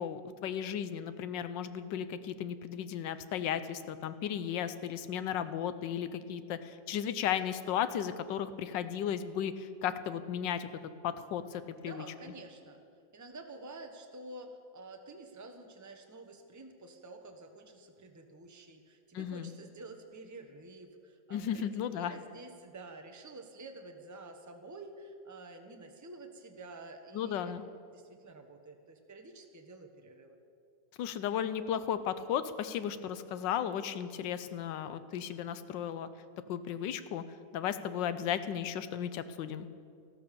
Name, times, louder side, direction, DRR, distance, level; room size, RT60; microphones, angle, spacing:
voice 1, 0.0-10.7 11.0-12.0 19.1-19.5 21.3-22.1 27.1-27.6 31.0-36.1 36.5-37.2 37.5-39.7, left 9 dB, 80° left, 12 dB, 1.4 m, -35 dB
voice 2, 11.8-12.8 13.1-27.5 27.9-30.4, right 2 dB, 15° right, 5 dB, 0.9 m, -49 dB
14.0 x 12.5 x 6.9 m, 2.3 s
omnidirectional pair, 2.0 m